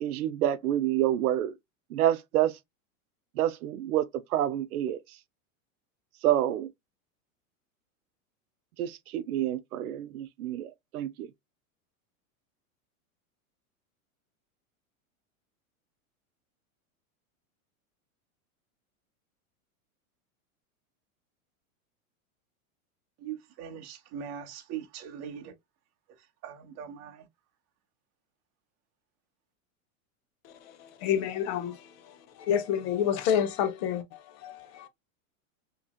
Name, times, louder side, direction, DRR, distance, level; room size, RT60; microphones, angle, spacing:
voice 1, 0.0-1.6 1.9-2.5 3.4-4.1 4.3-5.0 6.2-6.7 8.8-11.3, right 12 dB, 90° right, 0.6 m, -28 dB
voice 2, 23.2-25.5 26.4-27.2, right 8 dB, 40° right, 0.9 m, -40 dB
voice 3, 30.8-34.9, left 9 dB, 45° left, 0.7 m, -29 dB
2.9 x 2.7 x 2.2 m
supercardioid pair, 125°, 43 cm